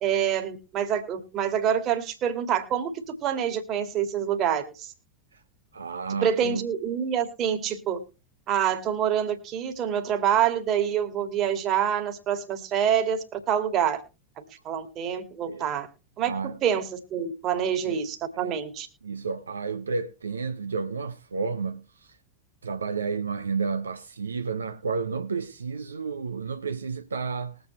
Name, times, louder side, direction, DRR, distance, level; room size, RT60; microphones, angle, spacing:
voice 1, 0.0-4.9 6.1-8.0 8.5-14.0 14.4-15.9 16.2-18.9, right 9 dB, 35° right, 1.9 m, -26 dB
voice 2, 5.7-6.6 15.5-15.7 16.2-16.5 17.5-18.0 18.3-18.6 19.0-22.2 22.6-27.6, right 5 dB, 75° right, 0.8 m, -31 dB
21.0 x 7.9 x 3.1 m
figure-of-eight pair, 90°, 0 cm